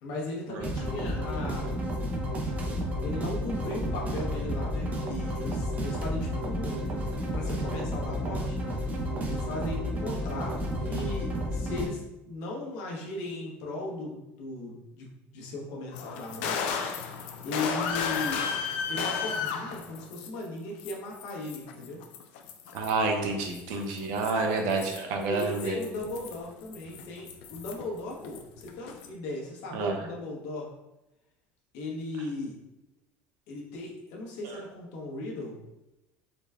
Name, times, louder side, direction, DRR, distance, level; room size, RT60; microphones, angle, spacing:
voice 1, 0.0-1.8 3.0-8.6 9.2-12.0 12.2-15.1 15.3-17.1 17.4-18.4 18.9-22.0 25.2-30.7 31.7-32.6 33.5-35.5, left 2 dB, 70° left, -2 dB, 1.1 m, -37 dB
sound 1, 0.6-11.9, equal, 25° right, 0.6 m, -31 dB
sound 2, 15.9-20.5 20.8-23.0 23.5-28.0 28.2-29.1, left 6 dB, 90° left, 0.5 m, -34 dB
voice 2, 22.7-25.8 29.7-29.9 34.4-34.6, right 3 dB, 75° right, 3 dB, 0.7 m, -29 dB
3.9 x 2.3 x 3.5 m, 0.94 s
cardioid pair, 150°, 6 cm